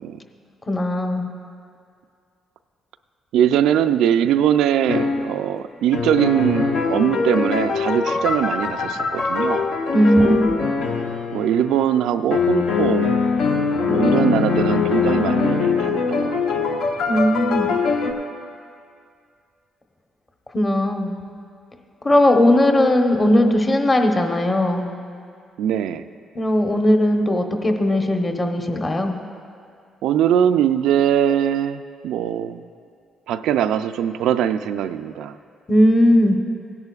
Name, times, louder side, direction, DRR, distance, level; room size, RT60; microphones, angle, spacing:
voice 1, 0.7-1.3 9.9-10.5 17.1-17.7 20.5-21.1 22.0-24.9 26.3-29.2 35.7-36.4, left 1 dB, 25° left, 4 dB, 1.0 m, -18 dB
voice 2, 3.3-9.6 10.0-10.4 11.3-13.2 13.9-16.8 25.6-26.0 30.0-32.6 33.3-35.4, right 9 dB, 85° right, 10 dB, 0.3 m, -21 dB
sound 1, 4.9-5.2 5.9-11.9 12.3-18.1, left 5 dB, 70° left, 0.9 m, -22 dB
16.5 x 10.5 x 2.4 m, 2.3 s
cardioid pair, 90°, 0 cm